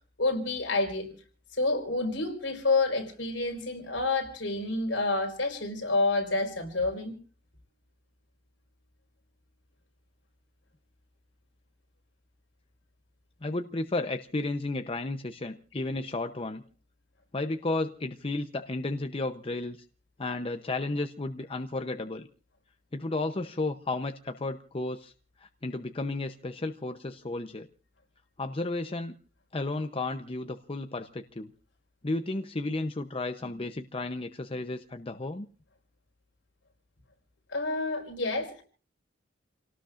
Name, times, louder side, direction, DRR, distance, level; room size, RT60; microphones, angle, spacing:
voice 1, 0.2-1.1 1.5-7.1 37.5-38.6, left 3 dB, 70° left, 2 dB, 4.7 m, -28 dB
voice 2, 13.4-16.6 17.3-19.8 20.2-22.3 22.9-25.1 25.4-27.7 28.4-29.2 29.5-31.5 32.0-35.5, left 2 dB, 30° left, 7 dB, 0.7 m, -33 dB
29.0 x 18.5 x 2.5 m, 0.39 s
head